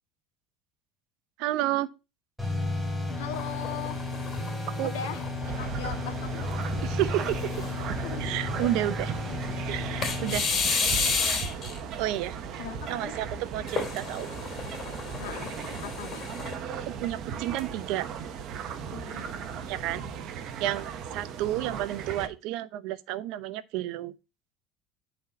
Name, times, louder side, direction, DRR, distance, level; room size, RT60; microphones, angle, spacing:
voice 1, 1.4-1.9 4.8-4.9 6.8-7.4 8.2-9.1 9.7-10.5 12.0-12.4 12.9-14.3 16.9-18.1 19.7-20.0 20.6-24.1, right 14 dB, 70° right, 0.7 m, -31 dB
sound 1, 2.4-10.4, left 2 dB, 5° right, 3.1 m, -33 dB
voice 2, 3.2-4.0 4.8-5.2 5.6-6.5 8.0-8.3 8.6-8.7 12.6-13.2 15.2-15.5 15.8-16.3 18.9-19.4, left 8 dB, 85° left, 1.8 m, -39 dB
sound 2, 3.3-5.9 6.4-6.5 7.2-7.9 10.0-11.8 13.7-16.6, left 5 dB, 40° left, 3.2 m, -32 dB
sound 3, 5.4-22.3, right 6 dB, 55° right, 1.2 m, -37 dB
9.6 x 4.3 x 4.2 m
supercardioid pair, 95°, 0 cm